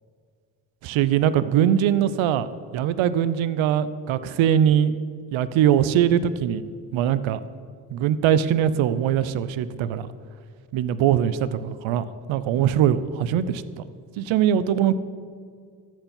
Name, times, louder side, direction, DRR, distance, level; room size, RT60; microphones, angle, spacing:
voice 1, 0.8-2.5 2.7-4.9 5.3-6.6 6.9-7.4 7.9-10.1 10.7-13.9 14.2-15.0, right 10 dB, 75° right, 15 dB, 0.6 m, -21 dB
13.5 x 4.5 x 7.0 m, 2.1 s
supercardioid pair, 55°, 48 cm